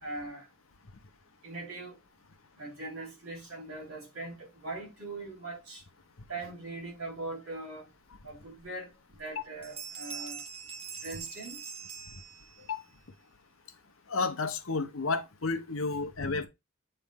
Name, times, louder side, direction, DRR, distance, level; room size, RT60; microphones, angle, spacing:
voice 1, 0.0-0.5 1.4-2.0 2.6-5.8 6.3-7.9 8.2-8.9 9.2-10.4 11.0-11.6, right 2 dB, 70° right, 3.7 m, -41 dB
sound 1, 8.6-8.7 9.1-9.4 9.6-12.8, right 6 dB, 25° right, 0.8 m, -43 dB
voice 2, 14.1-16.5, left 4 dB, 70° left, 0.9 m, -31 dB
8.5 x 3.4 x 3.6 m
head